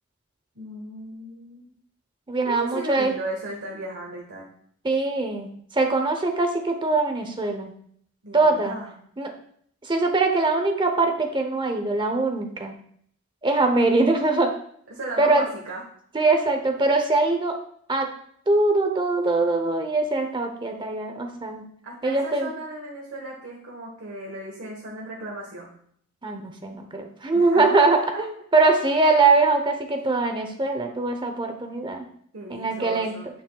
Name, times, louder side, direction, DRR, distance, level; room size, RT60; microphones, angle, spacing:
voice 1, 0.5-1.7 2.4-4.5 8.2-8.9 14.9-15.8 21.8-25.7 27.3-28.2 28.6-28.7 32.3-33.3, right 1 dB, 70° right, -2 dB, 1.3 m, -36 dB
voice 2, 2.3-3.1 4.8-7.7 8.3-8.8 9.2-9.3 9.8-12.7 13.4-14.5 15.2-15.4 16.1-17.6 17.9-18.1 18.5-21.6 22.0-22.5 26.2-32.1 32.5-33.1, right 3 dB, 20° right, 5 dB, 0.7 m, -22 dB
8.4 x 7.2 x 2.3 m, 0.63 s
head